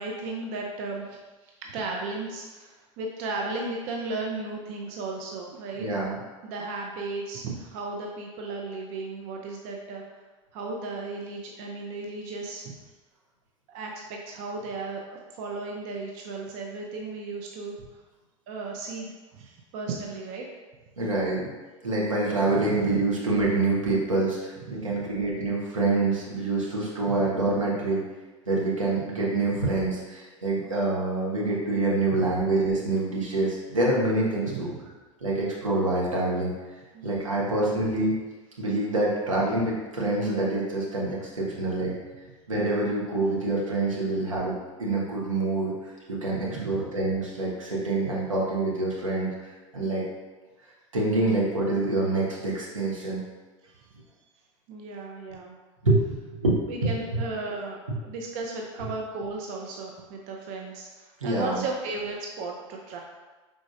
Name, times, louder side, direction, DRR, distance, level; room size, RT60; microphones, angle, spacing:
voice 1, 0.0-5.9 6.4-10.0 10.5-12.7 13.7-17.7 18.5-20.5 22.5-23.0 24.7-25.0 27.1-27.3 32.1-32.3 34.4-34.8 36.9-37.2 39.5-39.6 41.8-41.9 46.5-46.8 53.7-53.9 54.7-55.6 56.7-63.0, right 3 dB, 45° right, 0 dB, 0.6 m, -35 dB
voice 2, 5.8-6.2 21.0-21.5 21.8-28.0 28.5-34.7 35.2-36.5 37.0-38.1 38.6-41.9 42.5-50.0 50.9-53.2 55.8-56.6 61.2-61.6, right 2 dB, 85° right, -4 dB, 1.1 m, -26 dB
4.8 x 3.7 x 2.5 m, 1.3 s
figure-of-eight pair, 80°, 17 cm